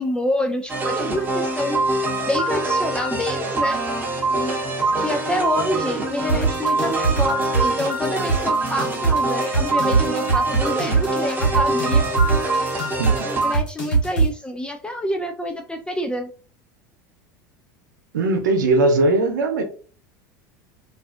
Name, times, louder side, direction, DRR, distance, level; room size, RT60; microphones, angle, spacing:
voice 1, 0.0-1.8 2.3-3.8 4.3-12.1 13.2-16.3, left 1 dB, 10° left, 5 dB, 0.3 m, -27 dB
Cool Tunes, 0.7-13.5, right 2 dB, 20° right, 0.9 m, -24 dB
sound 1, 6.3-14.3, right 4 dB, 90° left, 1.0 m, -20 dB
voice 2, 18.1-19.6, right 2 dB, 90° right, 5 dB, 0.7 m, -19 dB
2.5 x 2.3 x 2.4 m, 0.39 s
hypercardioid pair, 95°, 10 cm